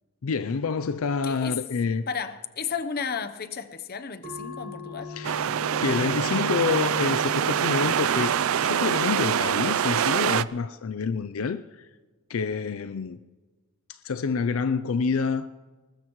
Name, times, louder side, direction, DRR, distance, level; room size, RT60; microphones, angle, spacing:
voice 1, 0.2-2.0 5.1-8.3 8.6-11.8 12.3-13.2 13.9-15.5, left 5 dB, 75° left, 0.5 m, -28 dB
voice 2, 1.2-1.6 2.1-5.1, left 6 dB, 45° left, 0.8 m, -33 dB
sound 1, 4.2-9.3, left 1 dB, 50° right, 2.2 m, -39 dB
sound 2, 5.2-10.4, right 9 dB, 80° right, 0.4 m, -25 dB
20.5 x 19.5 x 3.1 m
head